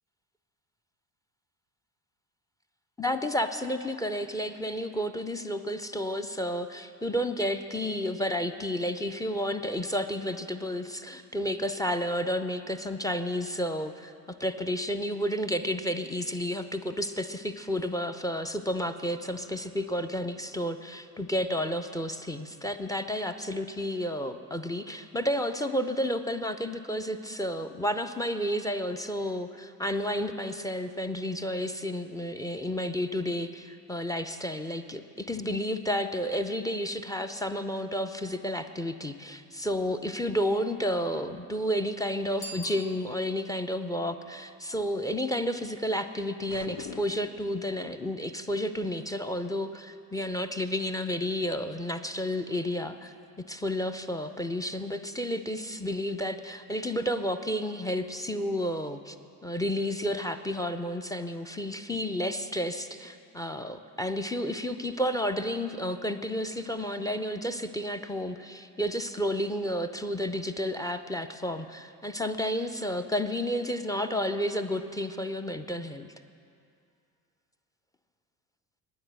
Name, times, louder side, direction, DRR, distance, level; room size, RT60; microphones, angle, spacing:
voice 1, 3.0-59.2 59.4-76.1, equal, 10° left, 9 dB, 0.5 m, -31 dB
Bicycle bell, 42.3-43.6, left 1 dB, 80° left, 1.5 m, -44 dB
sound 1, 46.5-47.5, left 6 dB, 45° left, 0.9 m, -42 dB
9.8 x 9.2 x 7.7 m, 2.4 s
hypercardioid pair, 55°, 47 cm